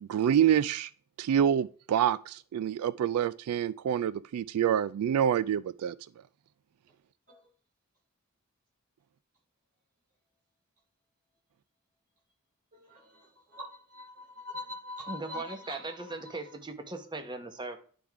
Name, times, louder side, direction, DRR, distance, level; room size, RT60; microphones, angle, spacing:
voice 1, 0.0-0.9 1.2-6.0, right 9 dB, 85° right, 0.3 m, -27 dB
voice 2, 12.7-16.4, left 2 dB, 40° right, 4.4 m, -44 dB
voice 3, 15.1-17.8, right 3 dB, 20° right, 1.0 m, -39 dB
10.0 x 3.7 x 4.6 m
head